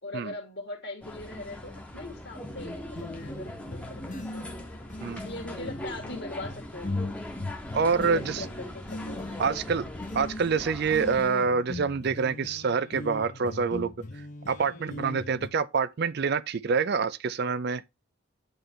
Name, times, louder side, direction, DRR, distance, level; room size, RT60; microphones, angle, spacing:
voice 1, 0.0-4.4 5.1-7.1 7.8-9.3 14.6-15.0, left 2 dB, 50° left, 1.8 m, -41 dB
sound 1, 1.0-11.2, left 1 dB, 5° left, 0.9 m, -40 dB
sound 2, 2.6-15.5, left 2 dB, 35° left, 0.7 m, -39 dB
voice 2, 7.7-8.5 9.4-9.8 10.1-13.9 14.5-17.8, right 5 dB, 50° right, 0.4 m, -26 dB
8.9 x 3.2 x 4.4 m
head